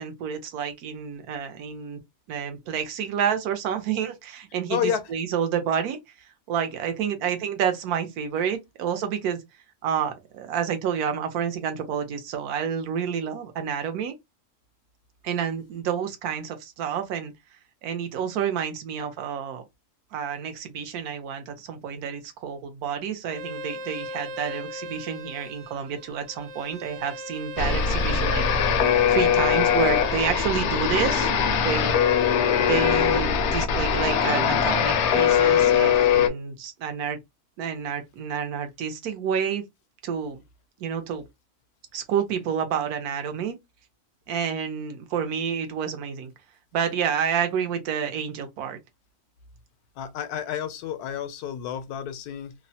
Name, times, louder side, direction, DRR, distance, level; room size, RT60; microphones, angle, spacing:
voice 1, 0.0-2.0 2.3-9.4 9.8-14.1 15.2-17.3 17.8-19.6 20.1-28.8 29.1-31.3 31.6-31.9 32.7-37.2 37.6-39.6 40.0-40.4 40.8-41.2 41.9-43.6 44.3-46.3 46.7-48.8, right 7 dB, 80° right, 1.2 m, -29 dB
voice 2, 4.7-5.1 50.0-52.5, left 9 dB, 85° left, 1.1 m, -30 dB
Bowed string instrument, 23.3-30.2, equal, 60° right, 1.0 m, -39 dB
sound 1, 27.6-36.3, left 7 dB, 70° left, 0.7 m, -21 dB
3.0 x 2.0 x 2.6 m
omnidirectional pair, 1.6 m